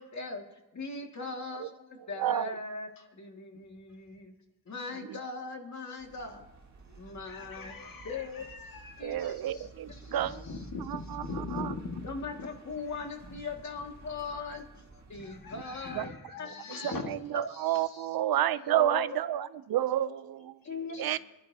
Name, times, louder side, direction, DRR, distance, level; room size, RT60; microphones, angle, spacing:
voice 1, 0.0-4.3 4.7-6.5 7.0-7.7 8.0-8.4 9.0-10.6 12.0-14.7 15.1-16.1 16.4-16.9 17.6-18.1 18.7-19.1 20.6-21.0, left 4 dB, 50° left, 2 dB, 2.1 m, -40 dB
voice 2, 2.2-2.6 5.1-5.2 9.0-10.4 10.9-11.2 11.5-11.7 15.9-16.1 16.8-20.6 21.0-21.2, right 12 dB, 85° right, 15 dB, 0.6 m, -30 dB
sound 1, 6.0-16.0, right 3 dB, 50° right, 2.1 m, -50 dB
voice 3, 6.9-9.6 9.9-12.1 12.4-12.5 13.4-13.5 14.9-17.1 17.7-17.8 20.8-21.2, left 4 dB, 70° left, 2 dB, 1.9 m, -42 dB
24.5 x 11.0 x 2.8 m, 1.0 s
cardioid pair, 80°, 35 cm